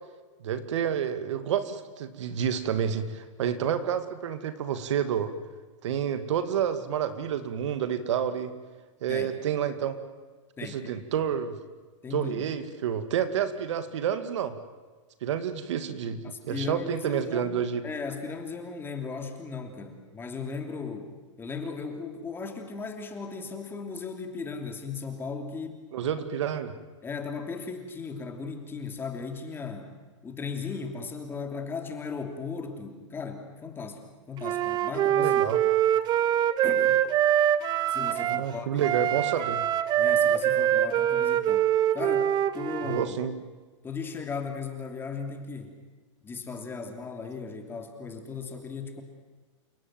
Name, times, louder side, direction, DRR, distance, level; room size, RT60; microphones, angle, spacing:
voice 1, 0.4-5.3 5.8-8.5 9.0-10.0 10.6-11.5 12.1-14.6 15.2-17.8 25.9-26.7 35.1-35.6 38.2-39.6 42.9-43.3, right 8 dB, 65° right, 11 dB, 2.3 m, -29 dB
voice 2, 10.6-11.1 12.0-12.5 16.2-21.1 21.4-25.9 27.0-29.9 30.2-34.0 34.3-35.4 36.6-37.1 37.9-39.1 40.0-41.7 41.9-43.2 43.8-45.8 46.2-49.0, left 4 dB, 15° left, 5 dB, 3.1 m, -37 dB
Wind instrument woodwind instrument, 34.4-38.5 38.8-43.0, right 11 dB, 25° right, 1.2 m, -24 dB
29.0 x 17.5 x 9.3 m, 1.4 s
hypercardioid pair, 145°, 16 cm